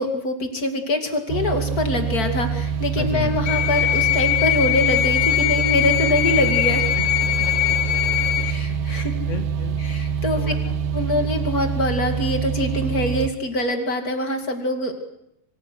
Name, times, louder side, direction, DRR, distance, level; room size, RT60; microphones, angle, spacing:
voice 1, 0.0-6.9 8.4-9.1 9.8-10.4 10.9-15.0, left 1 dB, 30° left, 4 dB, 1.9 m, -24 dB
sound 1, 1.3-13.3, right 7 dB, 75° right, 1.9 m, -26 dB
voice 2, 2.9-3.5 7.9-8.0 8.7-9.8 10.3-10.8 11.2-11.3, left 6 dB, 50° left, 4 dB, 0.8 m, -33 dB
sound 2, 3.5-8.5, left 15 dB, 70° left, 2.2 m, -21 dB
26.0 x 25.5 x 6.4 m, 0.82 s
omnidirectional pair, 5.0 m